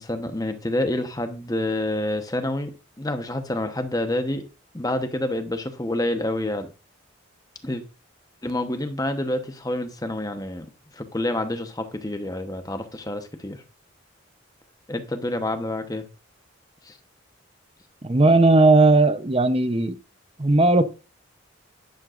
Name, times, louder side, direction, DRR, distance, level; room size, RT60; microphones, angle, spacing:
voice 1, 0.0-2.7 3.0-4.5 4.7-6.7 7.6-7.8 8.4-10.7 10.9-13.6 14.9-16.0 16.8-17.0, left 1 dB, 15° left, 1.0 m, -28 dB
voice 2, 18.0-19.9 20.4-20.8, right 2 dB, 25° right, 0.7 m, -17 dB
11.0 x 10.5 x 2.5 m
head